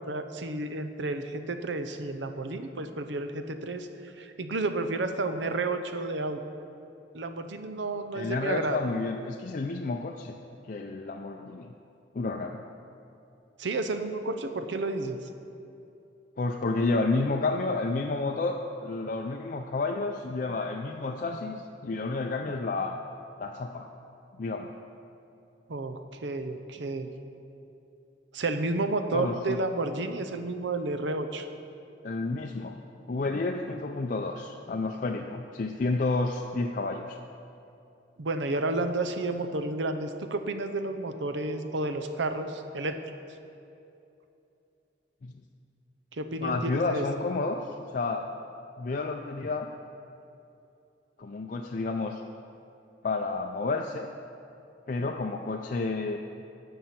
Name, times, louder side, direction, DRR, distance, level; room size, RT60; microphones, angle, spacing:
voice 1, 0.0-6.4 7.1-8.8 13.6-15.2 25.7-27.1 28.3-31.5 38.2-43.0 46.1-47.0, right 2 dB, 80° right, 8 dB, 0.7 m, -31 dB
voice 2, 8.1-10.4 10.7-11.7 12.1-12.6 16.4-22.9 23.4-23.9 24.4-24.7 29.1-29.6 32.0-37.2 45.2-45.3 46.4-48.3 48.8-49.7 51.2-52.2 53.0-54.1 54.9-56.2, left 3 dB, 45° left, 2 dB, 0.4 m, -30 dB
15.0 x 5.6 x 5.8 m, 2.8 s
head